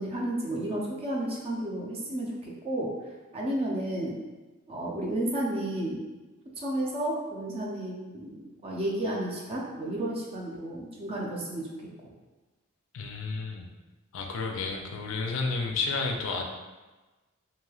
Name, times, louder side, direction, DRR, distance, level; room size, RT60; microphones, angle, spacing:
voice 1, 0.0-2.9 3.3-4.2 4.7-6.0 6.6-11.7 12.0-12.1, right 1 dB, 25° right, -3 dB, 0.5 m, -32 dB
voice 2, 12.9-13.7 14.1-16.4, left 4 dB, 65° left, 2 dB, 0.4 m, -31 dB
3.0 x 2.7 x 2.3 m, 1.2 s
head